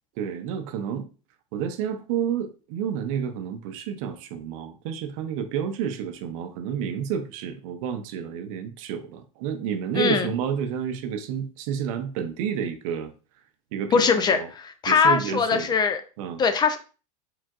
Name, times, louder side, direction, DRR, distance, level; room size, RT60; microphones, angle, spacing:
voice 1, 0.2-1.1 1.5-13.1 13.7-14.1 14.3-14.5 14.9-15.7 16.2-16.4, right 8 dB, 65° right, 0.7 m, -30 dB
voice 2, 9.9-10.3 13.9-16.0 16.4-16.8, left 5 dB, 20° left, 0.4 m, -21 dB
4.6 x 3.4 x 2.4 m
hypercardioid pair, 115°, 19 cm